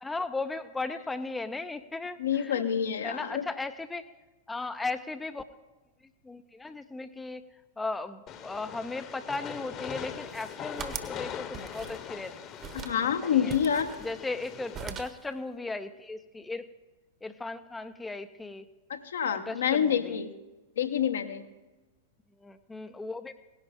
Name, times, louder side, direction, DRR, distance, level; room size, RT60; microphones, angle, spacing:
voice 1, 0.0-2.6 3.0-4.1 4.5-5.4 6.2-7.4 7.8-12.3 13.3-13.5 14.0-16.7 17.2-18.7 19.3-20.2 22.4-23.3, left 3 dB, 10° left, 10 dB, 0.5 m, -36 dB
voice 2, 2.2-3.4 12.7-14.0 18.9-20.3 20.8-21.4, left 8 dB, 65° left, 8 dB, 0.9 m, -27 dB
Train, 8.3-14.8, left 8 dB, 30° left, 1.0 m, -41 dB
sound 1, 10.1-11.2 11.5-12.3 12.6-13.0 13.5-14.5 14.7-15.3, right 7 dB, 30° right, 1.0 m, -41 dB
17.5 x 11.0 x 3.6 m, 1.2 s
figure-of-eight pair, 95°, 0 cm